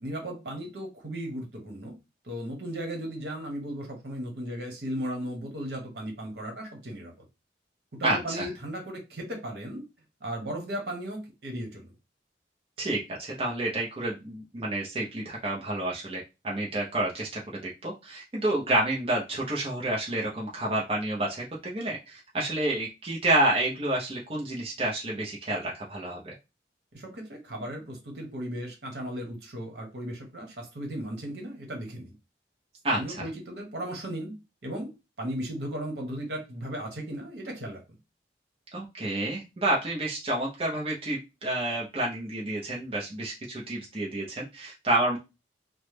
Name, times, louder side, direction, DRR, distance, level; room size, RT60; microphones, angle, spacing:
voice 1, 0.0-1.9 2.2-7.1 7.9-9.8 10.2-11.9 26.9-32.1 32.9-34.3 34.6-34.9 35.2-37.8, equal, 70° right, 1.1 m, -36 dB
voice 2, 8.0-8.5 12.8-26.3 32.8-33.3 38.7-45.2, right 1 dB, 30° right, 0.6 m, -29 dB
3.1 x 2.1 x 3.2 m
head